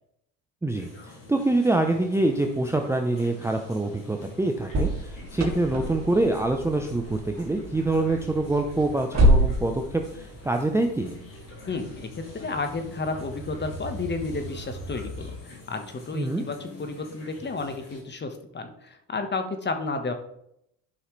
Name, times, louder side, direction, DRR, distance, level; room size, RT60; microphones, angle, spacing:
sound 1, 0.7-18.0, left 3 dB, 45° left, 3.4 m, -47 dB
voice 1, 1.3-11.2 16.1-16.4, right 2 dB, 5° right, 4 dB, 0.7 m, -25 dB
sound 2, 4.7-15.4, equal, 40° right, 2.0 m, -29 dB
voice 2, 11.7-20.1, left 3 dB, 25° left, 6 dB, 1.3 m, -32 dB
11.5 x 5.5 x 3.2 m, 0.77 s
supercardioid pair, 85°, 43 cm